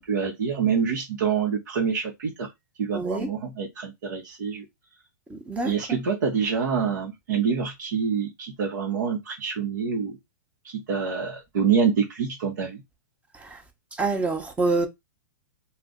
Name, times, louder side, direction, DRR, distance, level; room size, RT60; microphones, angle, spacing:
voice 1, 0.0-2.5 2.8-4.6 5.6-10.2 10.6-12.8, right 6 dB, 70° right, 0.8 m, -26 dB
voice 2, 2.9-3.3 5.3-5.7 13.3-13.6 13.9-14.9, right 3 dB, 15° right, 0.8 m, -26 dB
2.5 x 2.2 x 3.6 m
hypercardioid pair, 120°, 10 cm